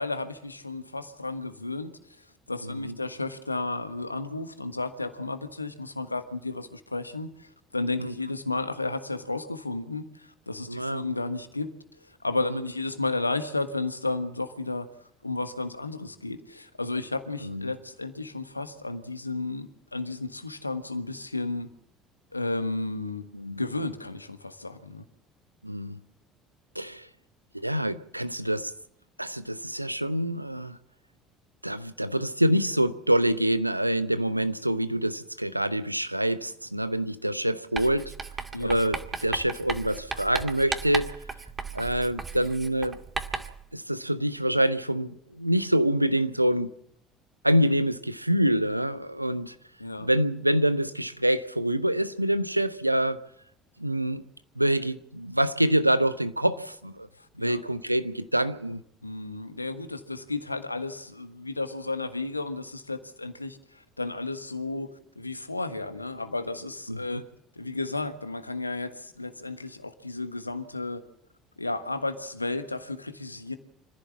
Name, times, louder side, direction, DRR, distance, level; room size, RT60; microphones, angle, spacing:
voice 1, 0.0-1.9 2.5-11.7 12.0-14.9 15.2-21.7 22.3-23.3 23.6-25.0 38.5-38.8 49.8-50.1 57.2-57.6 59.0-64.9 65.1-67.2 67.5-71.0 71.6-73.5, left 2 dB, 85° left, 1.4 m, -33 dB
voice 2, 2.6-2.9 8.0-8.1 10.7-11.0 12.5-12.6 17.4-17.7 23.3-23.6 25.6-26.0 26.7-27.1 27.5-28.7 29.2-30.8 31.6-38.1 38.6-39.0 39.2-41.1 41.7-43.0 43.7-46.7 47.4-49.5 50.0-53.2 53.8-54.2 54.6-57.1 57.4-58.8 66.9-67.2, right 1 dB, 90° right, 0.8 m, -26 dB
Writing, 37.8-43.6, right 4 dB, 25° right, 2.2 m, -36 dB
26.0 x 15.0 x 7.3 m
figure-of-eight pair, 60°, 0 cm